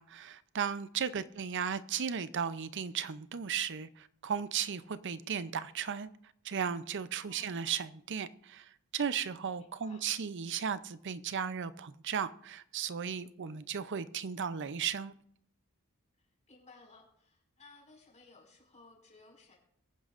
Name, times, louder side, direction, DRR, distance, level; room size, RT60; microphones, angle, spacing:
voice 1, 0.0-6.1 6.4-15.1, right 7 dB, 55° right, 0.6 m, -36 dB
voice 2, 7.3-7.6 9.6-10.0 13.4-13.7 16.2-19.6, left 3 dB, 35° left, 5.4 m, -59 dB
23.0 x 9.5 x 2.5 m
head